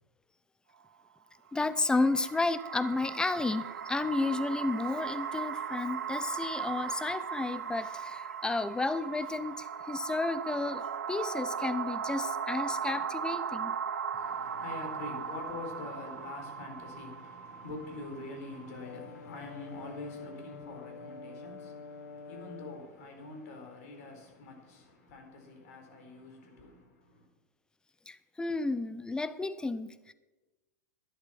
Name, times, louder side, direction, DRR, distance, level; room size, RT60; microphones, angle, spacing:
voice 1, 1.5-13.8 28.1-30.1, left 3 dB, 10° left, 0.7 m, -32 dB
sound 1, 1.6-18.7, right 7 dB, 80° right, 0.8 m, -38 dB
voice 2, 14.1-27.3, left 2 dB, 60° left, 4.1 m, -45 dB
Brass instrument, 18.8-23.0, left 4 dB, 80° left, 1.5 m, -47 dB
11.0 x 11.0 x 5.7 m
hypercardioid pair, 95°, 9 cm